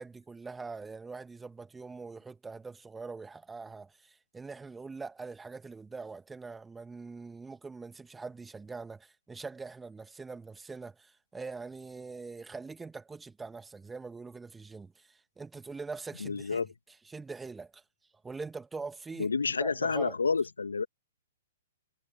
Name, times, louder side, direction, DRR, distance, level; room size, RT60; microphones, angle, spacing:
voice 1, 0.0-17.8 18.2-19.3 19.6-20.2, right 4 dB, 10° right, 2.0 m, -43 dB
voice 2, 16.2-16.7 19.2-20.9, left 5 dB, 75° left, 2.5 m, -29 dB
figure-of-eight pair, 115°, 0 cm